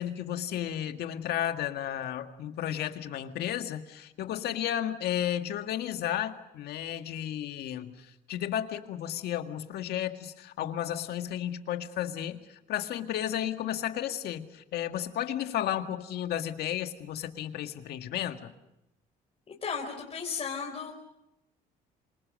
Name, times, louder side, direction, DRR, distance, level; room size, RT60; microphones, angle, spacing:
voice 1, 0.0-18.5, left 11 dB, 70° left, 7 dB, 1.9 m, -33 dB
voice 2, 19.5-20.9, left 6 dB, 35° left, -1 dB, 4.2 m, -35 dB
27.0 x 25.5 x 6.5 m, 0.88 s
cardioid pair, 110°, 17 cm